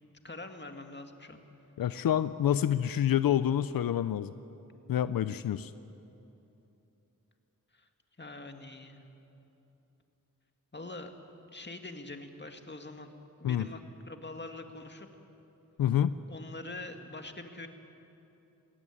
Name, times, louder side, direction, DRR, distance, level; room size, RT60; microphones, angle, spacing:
voice 1, 0.0-1.4 7.7-7.9 8.2-9.1 10.7-11.1 11.5-13.1 13.4-13.8 14.1-15.1 16.3-17.7, left 2 dB, 30° left, 5 dB, 2.2 m, -44 dB
voice 2, 1.8-4.3 4.9-5.7 13.4-13.7 15.8-16.2, left 10 dB, 90° left, 14 dB, 0.5 m, -27 dB
21.0 x 17.5 x 9.7 m, 2.9 s
cardioid pair, 50°, 34 cm